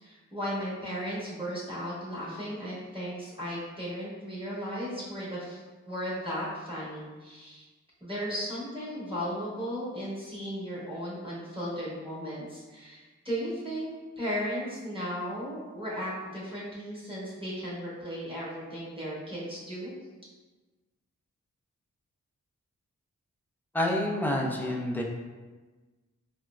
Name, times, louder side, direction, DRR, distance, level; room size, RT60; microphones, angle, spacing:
voice 1, 0.0-7.6 8.0-13.9 14.2-19.9, equal, 15° right, -8 dB, 1.0 m, -35 dB
voice 2, 23.7-25.0, left 1 dB, 5° left, -1 dB, 0.4 m, -28 dB
4.4 x 2.0 x 2.3 m, 1.3 s
wide cardioid pair, 95°, 31 cm